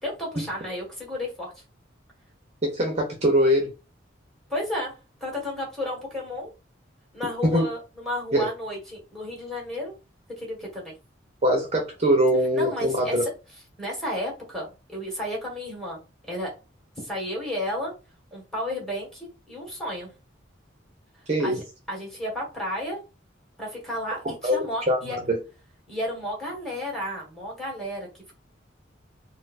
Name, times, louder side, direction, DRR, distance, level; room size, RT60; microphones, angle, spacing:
voice 1, 0.0-1.6 4.5-6.5 7.1-9.9 10.4-10.9 12.5-13.3 13.8-16.5 17.0-17.9 18.3-20.1 21.4-23.0 23.6-25.2 25.9-28.4, left 1 dB, ahead, -3 dB, 1.4 m, -32 dB
voice 2, 2.6-3.7 7.4-7.6 8.3-8.5 11.4-13.2 21.3-21.6 24.2-25.4, equal, 35° right, 1 dB, 0.6 m, -23 dB
4.2 x 2.1 x 2.5 m, 0.29 s
head